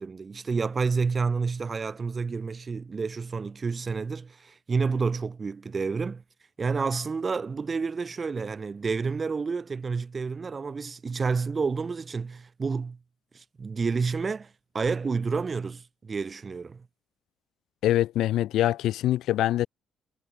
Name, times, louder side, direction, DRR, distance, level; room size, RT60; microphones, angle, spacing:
voice 1, 0.0-6.2 6.6-13.0 13.3-16.9, right 5 dB, 35° right, 3.1 m, -29 dB
voice 2, 17.8-19.7, left 13 dB, 85° left, 0.3 m, -24 dB
cardioid pair, 90°, 0 cm